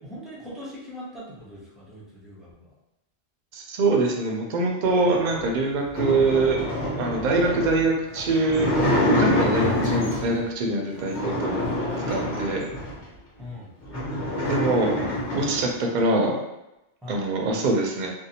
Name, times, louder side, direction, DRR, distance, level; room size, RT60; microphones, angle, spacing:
voice 1, 0.0-2.7 13.4-13.7 17.0-17.2, left 1 dB, ahead, -7 dB, 0.4 m, -40 dB
voice 2, 3.5-6.6 7.0-8.7 9.0-11.6 12.1-12.6 14.4-15.0 15.3-16.4 17.1-18.1, right 2 dB, 60° right, 1 dB, 0.5 m, -24 dB
sound 1, 5.2-10.4 11.0-13.0 13.5-13.6 13.8-15.7, left 1 dB, 40° left, 1.0 m, -26 dB
2.7 x 2.0 x 2.7 m, 0.92 s
omnidirectional pair, 1.2 m